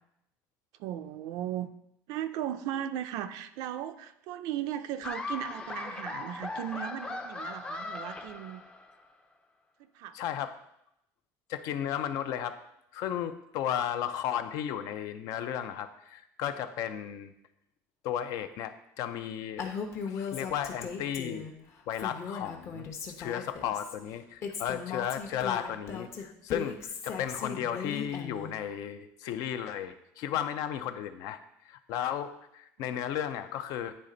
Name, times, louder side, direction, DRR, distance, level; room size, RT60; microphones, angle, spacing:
voice 1, 0.8-1.7 2.1-8.6 9.8-10.2 32.8-32.9, right 11 dB, 70° right, 10 dB, 0.5 m, -37 dB
Laughter, 5.0-9.1, left 3 dB, 15° left, 0.5 m, -38 dB
voice 2, 10.1-10.6 11.5-12.6 12.9-17.3 18.0-19.7 20.0-21.5 21.9-22.9 23.2-26.8 27.0-31.4 31.7-33.9, left 10 dB, 65° left, 10 dB, 0.5 m, -34 dB
Female speech woman speaking, 19.6-21.5 21.9-23.9 24.4-28.5, left 6 dB, 45° left, 0.9 m, -38 dB
9.7 x 3.3 x 3.9 m, 0.79 s
cardioid pair, 140°, 7 cm